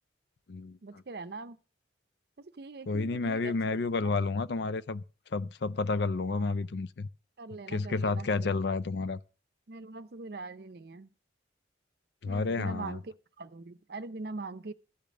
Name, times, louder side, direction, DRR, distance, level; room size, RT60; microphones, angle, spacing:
voice 1, 0.8-1.6 2.4-3.5 6.3-6.5 7.4-8.5 9.7-11.1 12.3-14.7, right 3 dB, 55° right, 0.6 m, -42 dB
voice 2, 2.9-5.0 5.3-7.1 7.7-9.2 12.2-13.0, left 3 dB, 60° left, 0.4 m, -30 dB
13.5 x 5.2 x 7.4 m
head